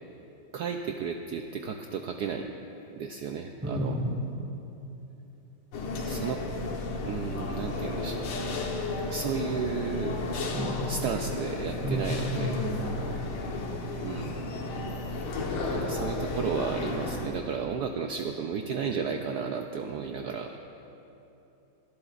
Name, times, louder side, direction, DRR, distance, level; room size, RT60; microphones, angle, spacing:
voice 1, 0.5-2.5 2.9-4.0 5.9-6.4 7.0-8.3 9.1-10.2 10.8-12.6 14.0-14.3 15.7-20.6, right 6 dB, 85° right, 4 dB, 0.9 m, -33 dB
voice 2, 3.6-4.3 10.5-10.8 11.8-12.9, equal, 10° right, 1 dB, 0.8 m, -31 dB
sound 1, 5.7-17.3, left 2 dB, 85° left, 2.0 m, -33 dB
23.5 x 13.0 x 2.5 m, 2.9 s
omnidirectional pair, 2.3 m